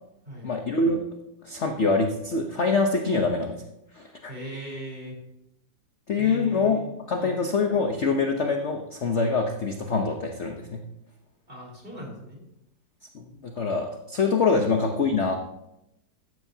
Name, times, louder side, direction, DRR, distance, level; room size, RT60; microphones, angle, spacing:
voice 1, 0.4-1.0 1.4-3.6 3.9-4.3 6.1-6.8 7.1-10.8 13.1-15.4, left 4 dB, 45° left, 3 dB, 1.0 m, -25 dB
voice 2, 4.3-5.2 6.2-6.9 7.2-7.4 11.5-12.4 14.5-14.6, equal, 25° right, -1 dB, 4.2 m, -38 dB
15.5 x 13.0 x 2.8 m, 0.85 s
omnidirectional pair, 2.1 m